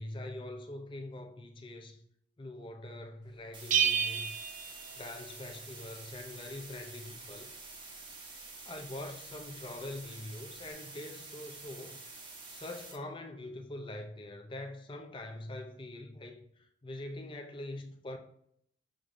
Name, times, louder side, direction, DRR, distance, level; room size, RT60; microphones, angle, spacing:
voice 1, 0.0-2.0 2.4-4.3 5.0-7.5 8.6-12.0 12.5-18.2, left 1 dB, 30° left, 0.5 m, -43 dB
sound 1, 3.5-13.0, right 3 dB, 25° right, 0.8 m, -48 dB
Bell, 3.7-5.5, right 7 dB, 45° right, 0.3 m, -31 dB
6.4 x 3.1 x 2.6 m
head